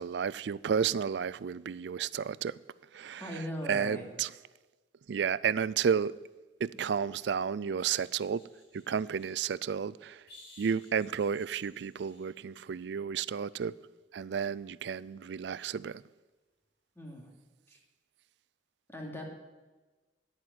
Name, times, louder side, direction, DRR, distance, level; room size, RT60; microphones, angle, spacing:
voice 1, 0.0-2.6 2.9-3.3 3.7-4.3 5.1-6.2 6.6-8.4 8.7-10.2 10.6-13.8 14.1-16.0, right 7 dB, 70° right, 0.4 m, -32 dB
voice 2, 3.2-4.1 17.0-17.3 17.7-17.8 18.9-19.2, equal, 15° left, 2.7 m, -39 dB
sound 1, 6.7-9.4 10.3-12.3 15.0-15.1, left 1 dB, 65° left, 6.1 m, -57 dB
10.5 x 9.6 x 9.3 m
head